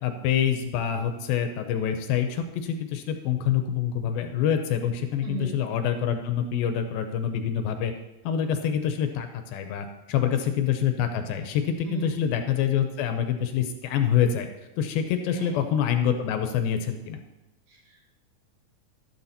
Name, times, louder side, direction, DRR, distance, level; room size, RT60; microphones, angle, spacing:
voice 1, 0.0-7.9 8.3-14.5 14.8-17.2, left 9 dB, 80° left, 7 dB, 2.3 m, -26 dB
voice 2, 5.2-5.5 10.1-10.6 11.9-12.2 15.3-15.6 17.7-18.0, right 4 dB, 70° right, -4 dB, 4.2 m, -37 dB
12.0 x 12.0 x 2.9 m, 1.0 s
omnidirectional pair, 4.5 m